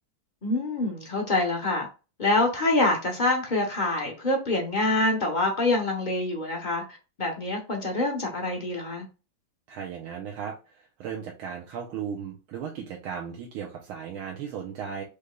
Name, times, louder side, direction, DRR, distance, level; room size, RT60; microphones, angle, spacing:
voice 1, 0.4-1.9 2.2-9.1, left 2 dB, 40° left, 0.6 m, -26 dB
voice 2, 9.7-15.0, right 7 dB, 90° right, 1.6 m, -36 dB
5.2 x 3.2 x 2.2 m
omnidirectional pair, 2.2 m